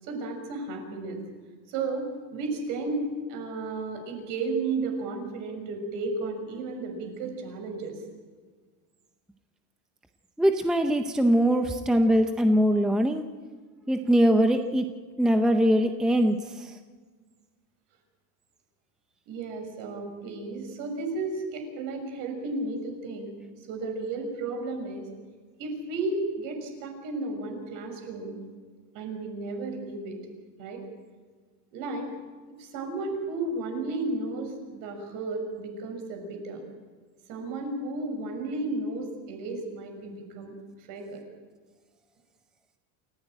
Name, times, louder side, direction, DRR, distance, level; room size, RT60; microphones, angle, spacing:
voice 1, 0.0-1.2 1.7-2.1 2.3-8.0 19.3-23.3 23.7-25.1 25.6-28.4 28.9-30.2 30.6-30.8 31.7-32.1 32.6-36.6 37.3-40.5 40.8-41.2, right 3 dB, 55° right, 4 dB, 6.4 m, -33 dB
voice 2, 10.4-13.3 13.9-14.9 15.2-16.8, equal, ahead, 6 dB, 0.6 m, -22 dB
28.0 x 16.0 x 9.0 m, 1.5 s
cardioid pair, 180°, 40 cm